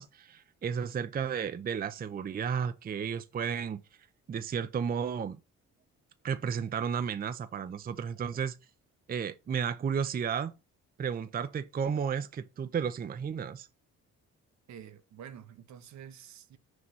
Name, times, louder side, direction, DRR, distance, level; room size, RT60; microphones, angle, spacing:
voice 1, 0.0-3.8 4.3-5.4 6.2-8.6 9.1-10.5 11.0-13.7, right 7 dB, 30° right, 0.5 m, -33 dB
voice 2, 14.7-16.6, right 8 dB, 65° right, 0.9 m, -48 dB
6.1 x 3.0 x 5.3 m
cardioid pair, 90°, 30 cm